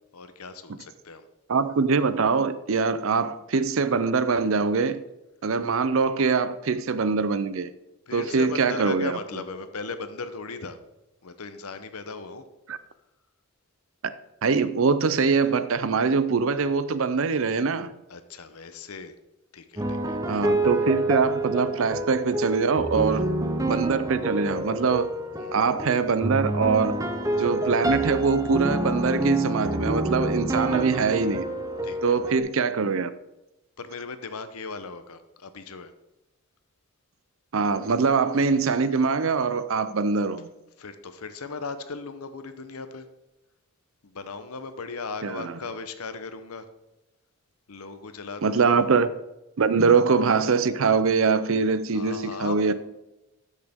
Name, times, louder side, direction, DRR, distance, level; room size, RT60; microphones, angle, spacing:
voice 1, 0.1-1.3 8.1-10.8 11.2-12.5 18.1-19.1 19.5-20.2 23.1-23.3 25.4-25.6 31.8-32.2 33.8-35.9 40.8-43.1 44.0-46.7 47.7-48.8 51.9-52.7, left 4 dB, 85° left, 0.9 m, -37 dB
voice 2, 1.5-5.0 5.4-7.7 8.1-9.2 12.7-12.8 14.0-14.1 14.4-17.9 20.3-23.3 23.7-25.1 25.5-27.0 27.4-31.5 32.0-33.1 37.5-40.5 45.2-45.5 48.4-49.1 49.6-52.7, right 5 dB, 65° right, 0.5 m, -23 dB
sound 1, 19.8-32.4, right 1 dB, 15° right, 0.7 m, -28 dB
13.0 x 6.5 x 3.6 m
head